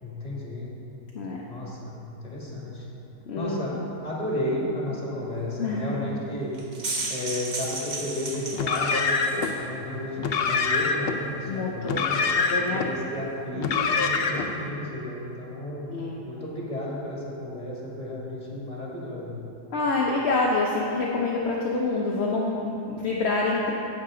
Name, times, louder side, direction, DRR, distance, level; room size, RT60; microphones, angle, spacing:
voice 1, 0.0-0.7 1.5-2.9 3.3-3.8 4.0-6.5 7.1-9.2 9.6-12.2 12.7-15.9 16.2-19.4, left 1 dB, 25° left, -5 dB, 2.1 m, -33 dB
voice 2, 3.3-3.8 5.6-6.0 11.5-12.0 12.3-12.8 15.9-16.2 19.7-23.7, left 3 dB, 50° left, -3 dB, 0.9 m, -27 dB
sound 1, 6.5-9.6, right 2 dB, 35° right, 0.9 m, -33 dB
Car, 8.5-9.5 10.2-11.2 11.8-12.9 13.6-14.5, left 4 dB, 75° left, 0.5 m, -25 dB
10.5 x 8.4 x 3.8 m, 3.0 s
omnidirectional pair, 1.7 m